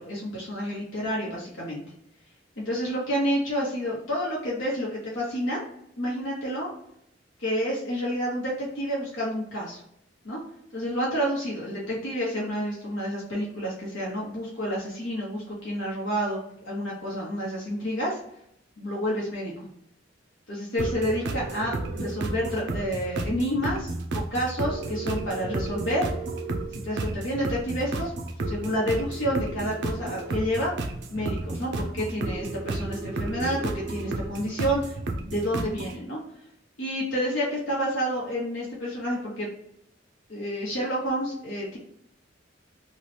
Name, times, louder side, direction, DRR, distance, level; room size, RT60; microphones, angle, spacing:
voice 1, 0.0-1.8 2.6-5.6 6.0-6.7 7.4-9.8 10.2-10.4 10.7-16.4 16.6-18.2 18.8-19.5 20.5-23.9 24.3-26.1 26.7-28.1 28.5-30.7 31.1-35.0 35.2-36.2 36.8-39.5 40.3-41.8, equal, 80° left, -4 dB, 1.0 m, -29 dB
sound 1, 20.8-36.0, right 2 dB, 60° right, 0.4 m, -32 dB
2.9 x 2.3 x 3.2 m, 0.74 s
head